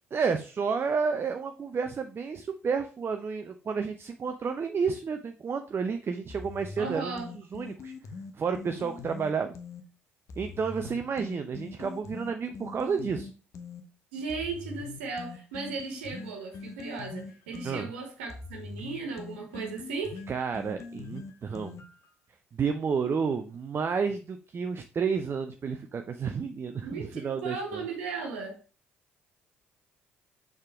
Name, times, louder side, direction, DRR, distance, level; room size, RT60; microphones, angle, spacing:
voice 1, 0.1-7.9 8.4-9.5 10.4-13.3 17.6-17.9 20.3-21.8 22.5-27.8, right 5 dB, 35° right, 7 dB, 0.6 m, -31 dB
sound 1, 6.3-9.8 10.3-13.8 14.3-22.1, left 4 dB, 50° left, 1.0 m, -43 dB
voice 2, 6.8-7.3 14.1-20.2 26.8-28.6, right 4 dB, 75° right, 1 dB, 1.5 m, -36 dB
6.5 x 3.7 x 4.6 m, 0.35 s
figure-of-eight pair, 50°, 7 cm